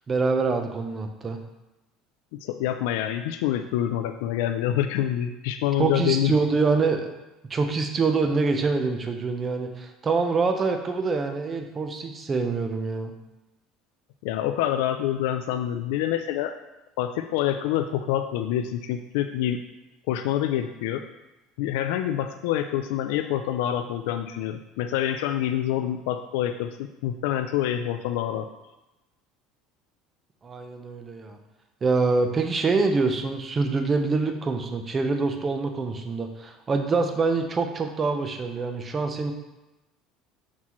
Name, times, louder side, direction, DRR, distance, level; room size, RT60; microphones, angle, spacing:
voice 1, 0.1-1.4 5.8-7.1 7.5-13.1 30.4-31.4 31.8-39.3, right 4 dB, 25° right, 5 dB, 0.7 m, -25 dB
voice 2, 2.3-6.4 14.2-16.5 17.0-19.6 20.1-21.0 21.6-28.5, left 11 dB, 85° left, 7 dB, 0.4 m, -26 dB
5.9 x 5.8 x 3.1 m, 1.0 s
cardioid pair, 135°, 0 cm